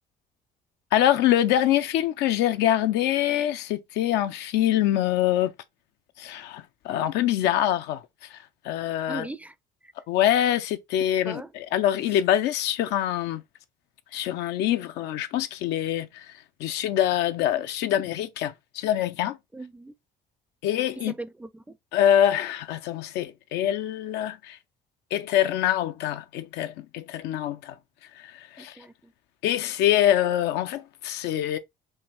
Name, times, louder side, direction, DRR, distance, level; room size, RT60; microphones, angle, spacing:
voice 1, 0.9-5.5 6.2-9.3 10.1-13.4 14.1-19.4 20.6-21.1 21.9-24.6 25.1-27.8 28.1-28.9 29.4-31.6, left 11 dB, 90° left, 0.6 m, -25 dB
voice 2, 9.1-9.5 9.8-9.9 11.3-11.5 19.5-19.9 21.0-21.8 28.6-29.1, right 2 dB, 10° right, 0.4 m, -39 dB
5.4 x 2.6 x 3.4 m
cardioid pair, 110°, 17 cm